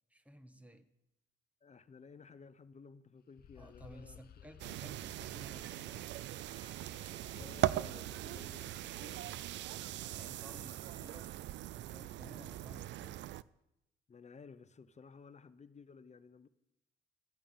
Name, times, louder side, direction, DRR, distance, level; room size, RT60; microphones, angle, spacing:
voice 1, 0.1-0.9 3.6-6.1 10.0-11.4 11.7-13.3, equal, 5° right, 1.7 m, -55 dB
voice 2, 1.6-4.8 7.4-9.7 14.1-16.5, left 5 dB, 40° left, 0.9 m, -56 dB
sound 1, 3.4-9.5, left 10 dB, 55° left, 0.5 m, -60 dB
sound 2, 4.6-13.4, right 14 dB, 75° right, 0.4 m, -40 dB
Bowed string instrument, 6.3-11.3, equal, 35° right, 4.8 m, -65 dB
13.0 x 8.8 x 8.6 m
supercardioid pair, 60°, 19 cm